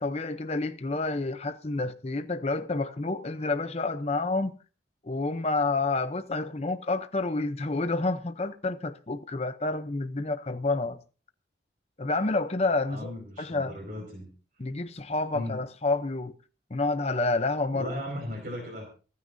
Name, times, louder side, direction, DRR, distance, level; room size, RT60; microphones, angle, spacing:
voice 1, 0.0-4.5 5.0-11.0 12.0-13.7 14.6-16.3 16.7-17.9, left 3 dB, 35° left, 0.6 m, -29 dB
voice 2, 12.9-14.3 15.3-15.6 17.7-18.9, equal, 45° right, 5.3 m, -37 dB
28.5 x 9.6 x 2.7 m
head